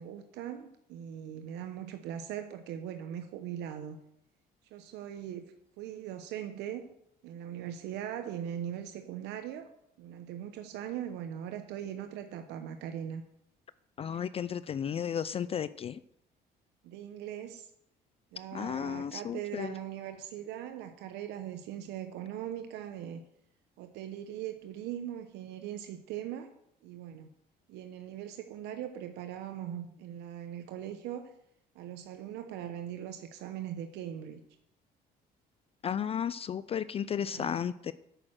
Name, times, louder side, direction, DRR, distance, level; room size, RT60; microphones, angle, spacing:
voice 1, 0.0-4.0 4.7-5.5 5.8-6.9 7.2-9.7 10.0-13.2 14.1-14.2 16.8-17.7 18.3-23.2 23.8-26.5 26.8-27.3 27.7-31.3 31.7-34.4 37.2-37.6, right 10 dB, 90° right, 7 dB, 0.9 m, -40 dB
voice 2, 14.0-16.0 18.5-19.7 35.8-37.9, left 8 dB, 35° left, 16 dB, 0.4 m, -34 dB
8.9 x 6.4 x 7.5 m, 0.75 s
cardioid pair, 110°, 17 cm